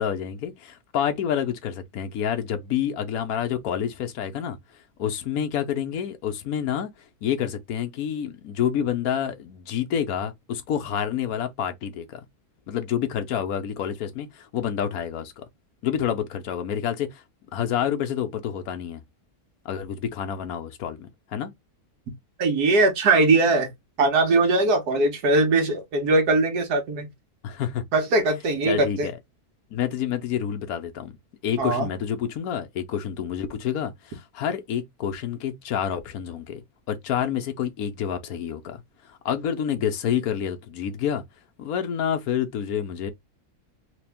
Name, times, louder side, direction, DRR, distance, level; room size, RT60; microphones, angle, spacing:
voice 1, 0.0-4.6 5.0-6.9 7.2-12.2 12.7-15.4 15.8-17.2 17.5-19.0 19.6-21.5 27.4-27.8 28.6-29.1 29.7-31.2 31.4-38.8 39.2-41.2 41.6-43.1, left 9 dB, 70° left, 1.3 m, -28 dB
voice 2, 22.4-23.7 24.0-27.1 27.9-29.1 31.6-31.9, right 2 dB, 85° right, 1.7 m, -20 dB
3.5 x 3.0 x 3.4 m
omnidirectional pair, 1.6 m